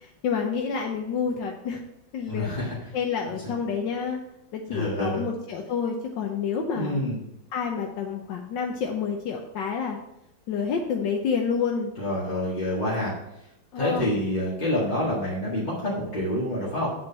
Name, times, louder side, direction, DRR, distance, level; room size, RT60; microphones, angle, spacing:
voice 1, 0.2-1.8 2.1-2.5 2.9-4.2 4.5-7.0 7.5-10.0 10.5-11.9 13.7-14.1, left 6 dB, 80° left, 2 dB, 1.4 m, -28 dB
voice 2, 2.3-2.7 3.3-3.5 4.7-5.2 6.7-7.2 12.0-13.1 13.8-16.9, left 1 dB, 25° left, -7 dB, 1.7 m, -27 dB
7.7 x 4.4 x 5.6 m, 0.83 s
omnidirectional pair, 2.0 m